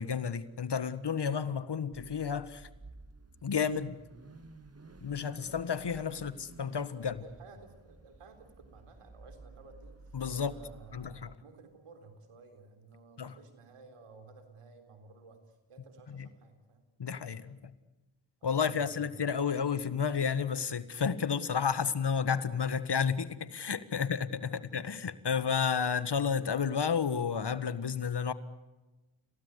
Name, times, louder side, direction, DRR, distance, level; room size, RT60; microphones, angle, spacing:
voice 1, 0.0-2.7 3.4-4.0 5.0-7.2 10.1-10.6 10.9-11.3 13.2-13.3 16.1-16.3 17.0-17.7 18.4-28.3, left 6 dB, 55° left, 1.7 m, -31 dB
Car / Idling / Accelerating revving vroom, 1.9-11.4, right 3 dB, 30° right, 1.9 m, -53 dB
voice 2, 7.0-16.8 18.4-19.1 23.9-24.8, right 3 dB, 85° right, 3.9 m, -55 dB
28.5 x 18.0 x 8.3 m
cardioid pair, 45°, 50 cm